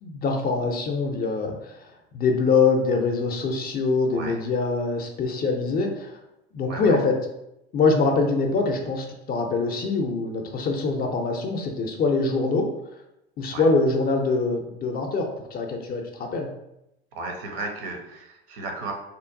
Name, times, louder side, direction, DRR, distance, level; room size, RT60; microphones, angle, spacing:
voice 1, 0.0-1.8 2.1-6.2 6.5-7.1 7.7-12.7 13.4-16.5, left 4 dB, 30° left, 3 dB, 0.5 m, -24 dB
voice 2, 6.7-7.0 13.5-13.7 17.1-18.9, right 3 dB, 65° right, 2 dB, 0.7 m, -34 dB
2.8 x 2.2 x 2.5 m, 0.86 s
figure-of-eight pair, 70°, 30 cm